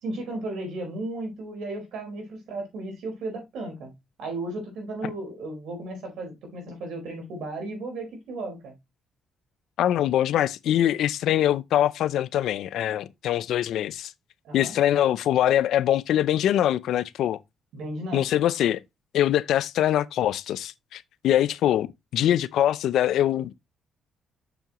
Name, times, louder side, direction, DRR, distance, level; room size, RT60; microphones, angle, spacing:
voice 1, 0.0-3.9 4.2-8.8 14.4-14.7 17.7-18.3, right 2 dB, 80° right, 4.4 m, -34 dB
voice 2, 9.8-14.1 14.5-17.4 18.1-18.8 19.1-23.5, left 11 dB, 80° left, 0.5 m, -23 dB
7.0 x 6.8 x 3.0 m
cardioid pair, 90°, 0 cm